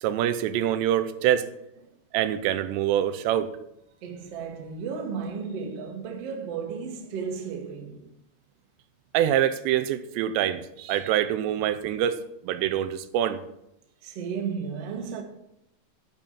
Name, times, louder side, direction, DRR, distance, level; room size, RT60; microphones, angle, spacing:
voice 1, 0.0-1.5 2.1-3.5 9.1-12.2 12.4-13.4, right 11 dB, 90° right, 2.8 m, -25 dB
voice 2, 4.0-8.1 14.0-15.2, right 6 dB, 60° right, 1.7 m, -34 dB
11.5 x 5.3 x 7.2 m
omnidirectional pair, 4.9 m